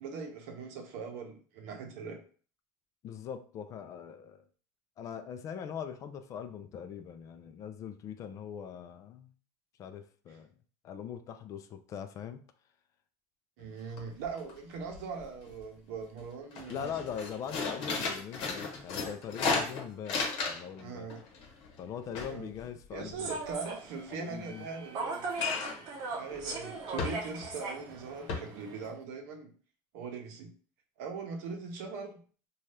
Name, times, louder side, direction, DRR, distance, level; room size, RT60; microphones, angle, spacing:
voice 1, 0.0-2.2 10.3-10.4 13.6-16.9 20.8-21.2 22.2-22.5 22.9-25.3 26.2-29.5 29.9-30.5 31.0-32.2, right 5 dB, 75° right, 0.7 m, -41 dB
voice 2, 3.0-4.4 5.0-9.3 9.8-10.5 10.8-12.4 16.7-21.1 21.8-23.3 24.1-24.7, left 8 dB, 40° left, 0.3 m, -41 dB
sound 1, 13.6-13.7 14.0-14.5 14.8-15.6 16.0-16.2 16.5-20.8 21.1-23.5 25.3-25.9 26.3-26.5 27.0-27.5 27.9-28.0 28.3-28.4, left 4 dB, 60° left, 0.9 m, -35 dB
Human voice / Subway metro underground, 23.2-28.9, right 3 dB, 50° right, 0.8 m, -39 dB
2.7 x 2.3 x 3.2 m
supercardioid pair, 135°, 9 cm